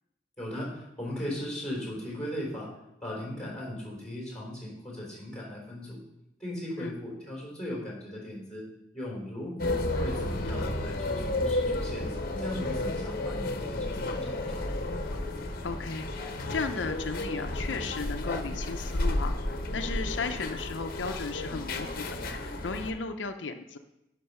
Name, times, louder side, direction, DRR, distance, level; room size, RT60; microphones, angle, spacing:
voice 1, 0.4-2.7 3.0-6.0 6.4-8.6 8.9-12.1 12.4-15.0, left 1 dB, 5° left, -3 dB, 3.9 m, -38 dB
sound 1, 9.6-22.9, left 1 dB, 55° left, 1.0 m, -32 dB
voice 2, 15.6-23.8, left 4 dB, 80° left, 6 dB, 0.6 m, -35 dB
10.5 x 6.0 x 5.6 m, 0.88 s
head